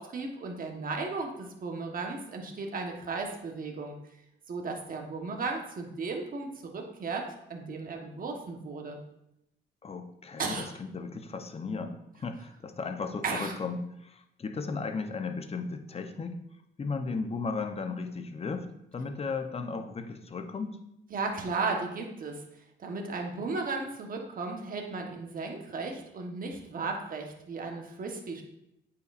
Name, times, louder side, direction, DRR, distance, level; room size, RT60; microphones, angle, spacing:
voice 1, 0.0-4.0 4.5-9.0 10.4-10.7 13.2-13.6 21.1-22.4 22.8-28.4, right 3 dB, 45° right, 2 dB, 1.3 m, -35 dB
voice 2, 9.8-16.3 16.8-18.7 18.9-20.8, left 4 dB, 30° left, 7 dB, 0.8 m, -35 dB
9.0 x 5.8 x 2.5 m, 0.81 s
cardioid pair, 90°, 20 cm